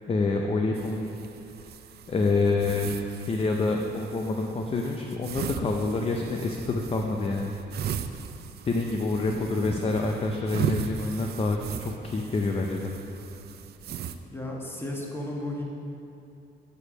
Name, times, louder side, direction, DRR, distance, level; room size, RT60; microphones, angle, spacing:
voice 1, 0.1-1.1 2.1-2.9 3.3-7.9 8.6-12.9, left 3 dB, 30° left, 2 dB, 0.5 m, -27 dB
sound 1, 0.7-14.1, right 8 dB, 55° right, 0.4 m, -38 dB
voice 2, 14.3-15.6, left 1 dB, 10° left, -1 dB, 1.2 m, -34 dB
6.8 x 4.7 x 5.8 m, 2.8 s
cardioid pair, 90°, 20 cm